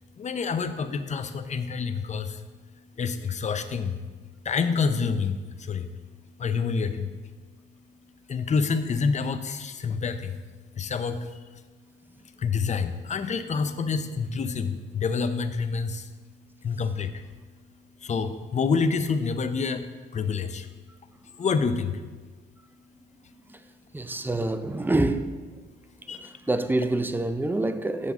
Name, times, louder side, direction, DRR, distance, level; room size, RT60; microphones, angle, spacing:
voice 1, 0.2-2.4 3.0-4.0 4.4-5.9 6.4-7.1 8.3-10.4 10.8-11.2 12.4-16.1 16.6-17.1 18.0-19.8 20.1-20.7 21.4-22.0 26.1-26.3, left 5 dB, 35° left, 0.6 m, -27 dB
voice 2, 23.9-25.4 26.0-28.1, right 2 dB, 10° right, 0.5 m, -27 dB
8.1 x 6.8 x 3.6 m
cardioid pair, 90°, 20 cm